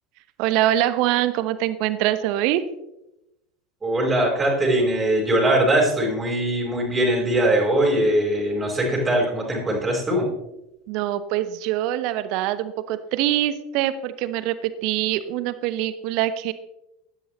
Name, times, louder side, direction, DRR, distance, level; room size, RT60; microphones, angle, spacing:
voice 1, 0.4-2.6 10.9-16.5, right 13 dB, 50° right, 13 dB, 0.9 m, -24 dB
voice 2, 3.8-10.3, right 1 dB, 20° right, -1 dB, 4.3 m, -21 dB
16.5 x 12.0 x 3.1 m, 0.89 s
figure-of-eight pair, 75°, 0 cm